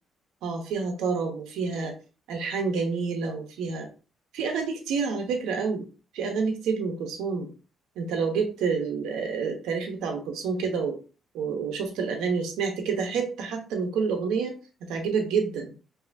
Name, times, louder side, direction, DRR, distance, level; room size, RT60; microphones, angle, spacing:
voice 1, 0.4-1.9 2.3-3.9 4.3-5.9 6.1-7.5 8.0-11.0 11.3-15.7, right 5 dB, 90° right, 4 dB, 0.8 m, -28 dB
4.9 x 2.8 x 2.6 m, 0.34 s
cardioid pair, 90°, 0 cm